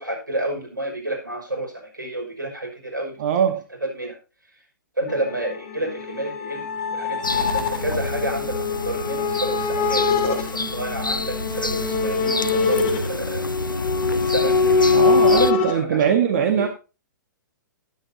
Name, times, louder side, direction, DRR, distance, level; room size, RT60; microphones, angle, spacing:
voice 1, 0.0-3.2 3.8-4.2 5.0-13.4 14.1-16.7, right 1 dB, 80° right, 2 dB, 6.1 m, -30 dB
voice 2, 3.2-3.6 14.9-16.7, right 8 dB, 45° right, 6 dB, 1.6 m, -21 dB
sound 1, 5.1-15.7, left 4 dB, 35° left, 2.5 m, -23 dB
sound 2, 7.2-15.5, left 2 dB, 85° left, 0.7 m, -29 dB
18.5 x 8.4 x 2.8 m, 0.31 s
figure-of-eight pair, 115°, 11 cm